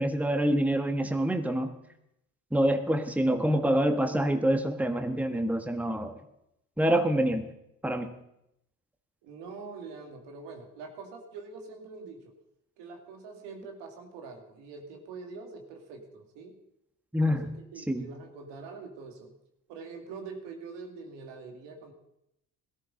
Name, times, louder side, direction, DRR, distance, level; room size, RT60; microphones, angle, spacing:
voice 1, 0.0-1.7 2.5-6.2 6.8-7.5 7.8-8.1 17.1-17.5 17.9-18.1, right 1 dB, 5° right, 7 dB, 1.4 m, -26 dB
voice 2, 9.2-12.3 12.8-16.6 17.2-17.4 17.7-19.4 19.7-21.9, right 4 dB, 70° right, 4 dB, 2.3 m, -44 dB
17.5 x 13.5 x 3.8 m, 0.82 s
hypercardioid pair, 50°, 44 cm